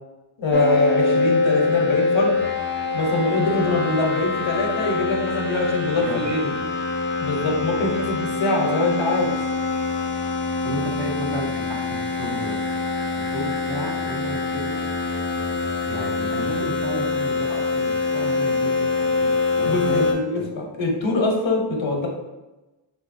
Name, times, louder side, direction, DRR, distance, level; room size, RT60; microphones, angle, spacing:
voice 1, 0.4-2.4 2.9-6.4 7.2-9.3 19.6-22.1, left 2 dB, 70° left, 0 dB, 0.8 m, -23 dB
sound 1, 0.5-20.1, left 3 dB, 25° left, 0.4 m, -24 dB
voice 2, 5.9-6.6 10.6-12.6 13.2-14.8 15.8-20.0 20.4-20.5, right 1 dB, 55° right, 0 dB, 0.7 m, -33 dB
3.1 x 2.7 x 2.5 m, 1.1 s
wide cardioid pair, 60°, 49 cm